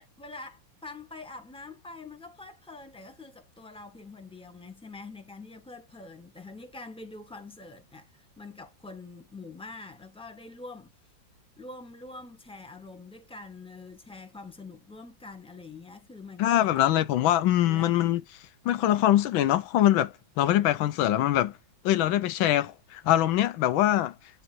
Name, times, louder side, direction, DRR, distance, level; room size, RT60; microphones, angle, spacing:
voice 1, 0.0-10.9 11.6-17.3 17.6-17.9, left 3 dB, 5° left, 1.5 m, -45 dB
voice 2, 16.4-18.2 18.6-21.5 21.8-24.1, left 13 dB, 90° left, 1.5 m, -23 dB
10.5 x 4.4 x 2.6 m
omnidirectional pair, 2.1 m